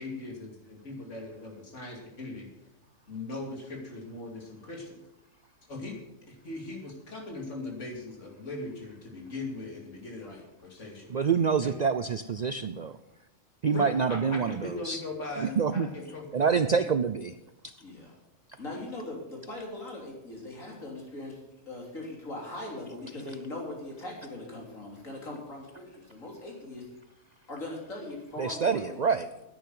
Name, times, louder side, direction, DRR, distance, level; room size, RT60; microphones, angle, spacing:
voice 1, 0.0-2.5 3.1-5.0 5.7-6.0 6.3-11.1 11.6-11.7 13.7-16.8, left 2 dB, 65° left, 1 dB, 3.0 m, -40 dB
voice 2, 11.1-13.0 13.6-15.0 15.4-15.9 16.3-17.4 28.4-29.3, right 6 dB, 60° right, 11 dB, 0.4 m, -27 dB
voice 3, 17.8-18.1 18.6-21.4 21.7-26.9 27.5-29.1, left 2 dB, 85° left, -1 dB, 3.7 m, -40 dB
10.5 x 9.1 x 7.8 m, 0.89 s
omnidirectional pair, 1.3 m